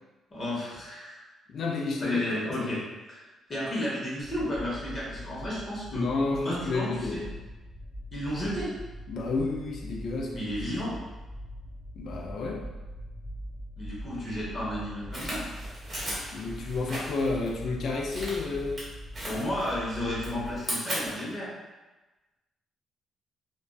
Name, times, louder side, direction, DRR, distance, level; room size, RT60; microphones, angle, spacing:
voice 1, 0.3-1.2 2.0-2.8 3.1-3.2 3.5-6.1 6.4-7.2 8.1-8.7 10.3-11.0 13.8-15.5 19.2-21.5, left 1 dB, 35° left, -6 dB, 0.9 m, -32 dB
voice 2, 1.5-2.2 2.5-2.7 5.9-7.3 9.1-10.5 12.0-12.6 16.3-18.9, left 3 dB, 65° left, 0 dB, 0.4 m, -31 dB
sound 1, 4.2-20.6, equal, 5° right, 0.6 m, -42 dB
sound 2, 15.1-17.5 18.0-18.8 19.1-19.8 20.1-21.3, right 1 dB, 30° right, 1.3 m, -36 dB
2.4 x 2.3 x 2.2 m, 1.1 s
cardioid pair, 90°, 0 cm